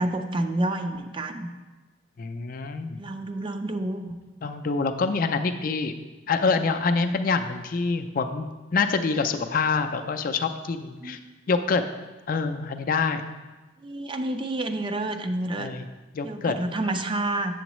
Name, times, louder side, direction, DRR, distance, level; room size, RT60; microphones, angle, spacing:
voice 1, 0.0-1.5 3.0-4.1 11.0-11.2 13.8-15.7 16.2-17.5, right 1 dB, 25° right, 6 dB, 0.4 m, -29 dB
voice 2, 2.2-3.0 4.4-5.9 6.3-11.2 11.5-11.8 12.3-13.2 15.6-15.9 16.1-16.5, left 4 dB, 45° left, 8 dB, 0.4 m, -26 dB
7.8 x 7.1 x 3.0 m, 1.2 s
head